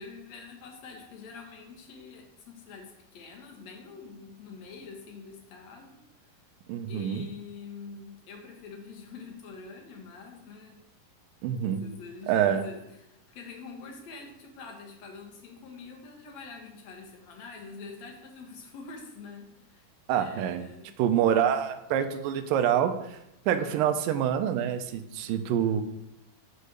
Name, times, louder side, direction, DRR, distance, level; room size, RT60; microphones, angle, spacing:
voice 1, 0.0-6.0 6.9-10.8 11.6-20.9 25.6-25.8, left 4 dB, 55° left, 1 dB, 2.4 m, -45 dB
voice 2, 6.7-7.2 11.4-11.8 12.3-12.6 20.1-20.6 21.0-23.2 23.5-25.8, right 9 dB, 80° right, 8 dB, 2.2 m, -26 dB
8.4 x 5.4 x 6.5 m, 0.85 s
omnidirectional pair, 4.3 m